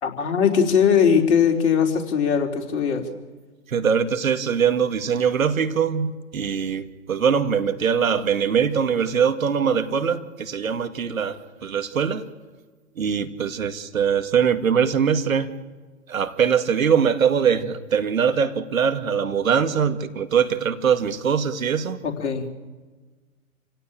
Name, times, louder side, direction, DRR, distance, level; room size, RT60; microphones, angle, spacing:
voice 1, 0.0-3.1 22.0-22.5, left 7 dB, 50° left, 3 dB, 3.9 m, -20 dB
voice 2, 3.7-12.2 13.0-15.5 16.1-22.0, right 7 dB, 65° right, 10 dB, 2.1 m, -22 dB
28.0 x 17.0 x 9.1 m, 1.3 s
figure-of-eight pair, 125°, 43 cm